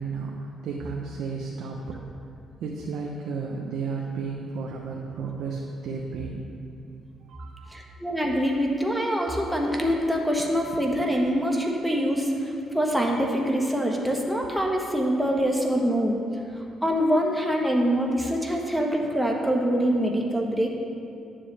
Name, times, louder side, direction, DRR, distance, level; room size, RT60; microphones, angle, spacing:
voice 1, 0.0-2.0 2.6-6.4 7.2-7.9, right 4 dB, 80° right, -1 dB, 0.8 m, -33 dB
voice 2, 7.7-16.2 16.8-20.8, equal, 5° right, -1 dB, 1.1 m, -24 dB
11.5 x 7.5 x 3.3 m, 2.5 s
cardioid pair, 90°, 0 cm